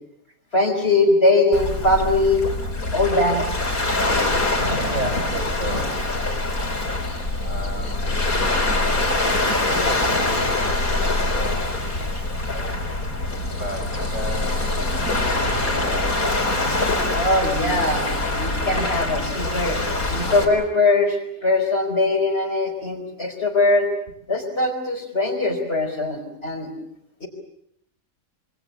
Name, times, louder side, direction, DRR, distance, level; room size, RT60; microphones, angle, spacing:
voice 1, 0.5-2.5 2.9-3.5 4.5-4.9 5.7-5.8 17.1-19.8 20.1-23.9 24.3-26.7 27.2-27.3, left 2 dB, 35° left, 4 dB, 4.6 m, -21 dB
Waves surf, 1.5-20.5, left 2 dB, 60° left, 4.5 m, -24 dB
voice 2, 4.8-6.1 7.4-12.7 13.6-16.4, right 1 dB, 50° right, 5 dB, 5.2 m, -34 dB
26.5 x 26.0 x 7.1 m, 0.72 s
omnidirectional pair, 1.7 m